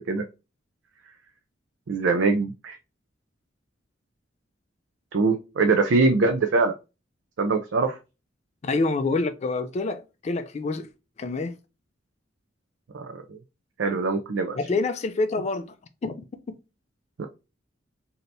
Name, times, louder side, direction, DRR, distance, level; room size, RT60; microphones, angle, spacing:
voice 1, 1.9-2.8 5.1-6.7 7.4-8.0 12.9-13.4 13.8-14.6 17.2-17.3, right 3 dB, 85° right, 0.4 m, -23 dB
voice 2, 8.6-10.9 11.2-11.6 14.6-15.7 16.0-16.2, left 3 dB, 35° left, 0.3 m, -27 dB
3.2 x 2.7 x 2.6 m
head